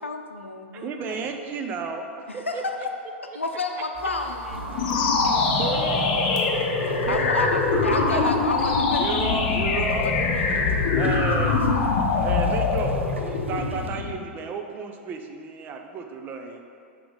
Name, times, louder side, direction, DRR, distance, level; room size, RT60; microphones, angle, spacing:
voice 1, 0.0-1.3 2.3-2.9 3.3-4.6 7.1-9.6 9.9-11.1, left 3 dB, 80° left, 4 dB, 0.6 m, -31 dB
voice 2, 0.8-2.6 5.6-6.0 7.1-7.3 7.7-8.4 9.0-10.1 10.9-11.7 12.2-12.9 13.2-16.6, right 5 dB, 30° right, 4 dB, 0.6 m, -32 dB
sound 1, 3.9-13.1, equal, 5° right, 1.1 m, -41 dB
sound 2, 4.5-13.9, right 2 dB, 75° right, 0.6 m, -38 dB
sound 3, 4.7-14.2, left 4 dB, 45° left, 0.8 m, -23 dB
voice 3, 4.7-7.2, right 2 dB, 60° right, -1 dB, 1.2 m, -43 dB
6.1 x 5.0 x 4.9 m, 2.4 s
figure-of-eight pair, 95°, 7 cm